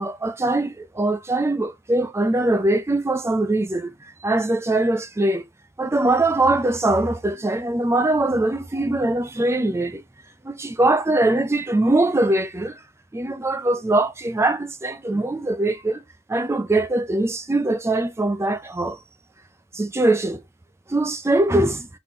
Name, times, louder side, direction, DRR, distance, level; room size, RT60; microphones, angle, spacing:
voice 1, 0.0-3.9 4.2-5.4 5.8-10.0 10.4-12.8 13.1-16.0 16.3-19.0 19.7-20.4 20.9-21.9, right 2 dB, 10° right, 0.3 m, -22 dB
4.1 x 3.7 x 2.9 m
head